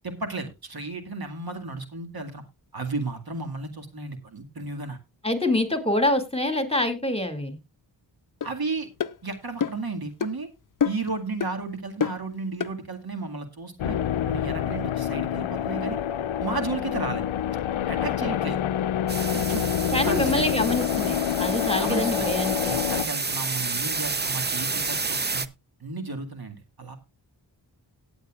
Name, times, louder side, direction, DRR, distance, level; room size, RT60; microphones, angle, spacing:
voice 1, 0.0-2.4 2.7-5.0 8.4-8.9 9.2-10.5 10.8-14.0 14.3-16.0 16.4-17.2 17.9-18.6 19.3-19.6 20.0-20.4 21.8-22.3 22.7-25.4 25.8-27.0, right 3 dB, 50° right, 5 dB, 2.0 m, -33 dB
voice 2, 5.2-7.6 19.9-22.8, left 1 dB, 10° left, 8 dB, 2.4 m, -25 dB
sound 1, 8.4-8.5 9.0-9.2 9.6-9.9 10.2-10.3 10.8-11.1 11.4-11.5 12.0-12.2 12.6-12.7, left 7 dB, 45° left, 0.6 m, -27 dB
sound 2, 13.8-23.1, left 10 dB, 85° left, 0.6 m, -27 dB
sound 3, 19.1-25.5, right 4 dB, 20° right, 0.7 m, -30 dB
17.5 x 8.1 x 2.4 m, 0.24 s
cardioid pair, 40°, 46 cm